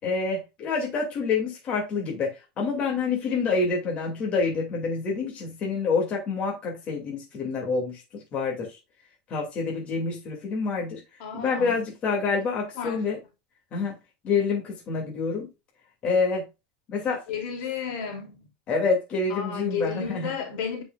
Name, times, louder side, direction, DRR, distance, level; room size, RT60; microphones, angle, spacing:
voice 1, 0.0-8.8 9.3-11.0 11.3-13.2 13.7-14.0 14.2-15.5 16.0-16.5 16.9-17.2 18.7-20.3, left 4 dB, 30° left, 2.5 m, -27 dB
voice 2, 11.2-11.7 12.8-13.1 17.3-18.4 19.3-20.8, left 6 dB, 60° left, 2.9 m, -32 dB
8.8 x 5.2 x 2.4 m
supercardioid pair, 155°, 4 cm